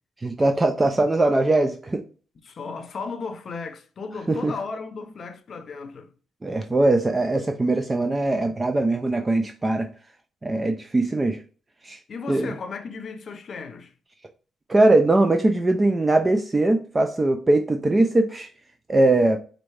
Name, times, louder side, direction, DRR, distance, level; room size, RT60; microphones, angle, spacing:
voice 1, 0.2-2.0 4.3-4.5 6.4-9.9 10.4-11.4 11.8-12.0 12.3-12.5 14.7-18.5 18.9-19.4, right 2 dB, 20° right, 0.4 m, -21 dB
voice 2, 2.4-6.1 12.1-13.9, left 4 dB, 50° left, 0.7 m, -35 dB
4.3 x 2.6 x 3.2 m
cardioid pair, 90°, 0 cm